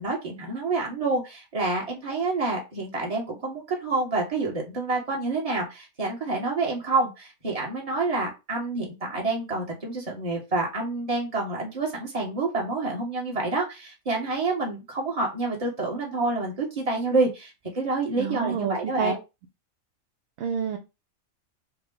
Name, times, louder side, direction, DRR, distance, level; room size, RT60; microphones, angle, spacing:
voice 1, 0.0-19.2, right 3 dB, 25° right, 1.2 m, -28 dB
voice 2, 18.1-19.1 20.4-20.8, right 6 dB, 65° right, 0.8 m, -28 dB
4.6 x 2.1 x 3.7 m
omnidirectional pair, 1.4 m